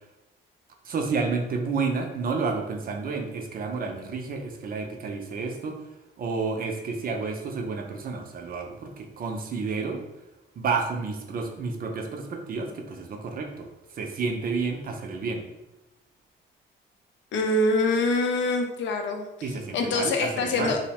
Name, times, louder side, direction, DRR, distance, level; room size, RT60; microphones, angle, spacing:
voice 1, 0.8-5.8 6.2-10.0 10.6-13.7 13.9-15.4 19.4-20.8, right 4 dB, 50° right, 3 dB, 0.4 m, -30 dB
voice 2, 17.3-19.2 19.7-20.8, left 2 dB, 70° left, 4 dB, 0.5 m, -24 dB
2.6 x 2.0 x 2.9 m, 0.97 s
cardioid pair, 90°, 20 cm